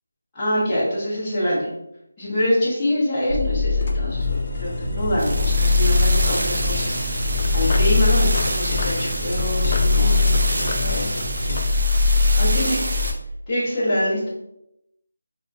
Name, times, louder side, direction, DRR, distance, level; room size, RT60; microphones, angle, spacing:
voice 1, 0.3-1.7 2.2-10.5 10.8-11.2 12.3-12.8 13.5-14.3, equal, 10° left, -15 dB, 1.0 m, -25 dB
sound 1, 3.3-13.1, left 3 dB, 50° right, 0.5 m, -21 dB
sound 2, 3.7-11.6, left 3 dB, 35° left, 0.4 m, -31 dB
3.6 x 2.4 x 2.5 m, 0.84 s
figure-of-eight pair, 175°, 0 cm